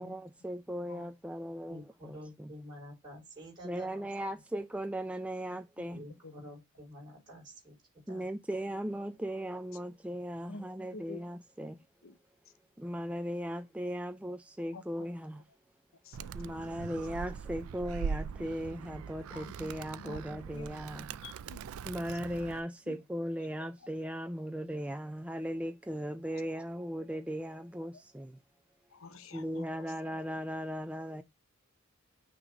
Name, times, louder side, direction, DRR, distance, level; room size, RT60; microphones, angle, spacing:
voice 1, 0.0-2.5 3.6-6.0 8.1-11.8 12.8-15.4 16.3-21.1 21.8-28.4 29.3-31.2, equal, 5° right, 0.3 m, -38 dB
voice 2, 1.7-4.1 5.9-7.8 8.1-8.3, equal, 20° right, 3.4 m, -49 dB
voice 3, 5.5-5.9 6.2-6.3 10.5-10.6 10.9-11.2 12.0-12.2 14.7-14.8 15.2-15.3 16.0-16.9 19.3-19.7 20.0-22.2 22.9-23.0 28.9-29.9, left 3 dB, 70° left, 0.8 m, -50 dB
Animal, 16.1-22.6, right 6 dB, 90° right, 0.4 m, -41 dB
6.2 x 3.0 x 5.0 m
head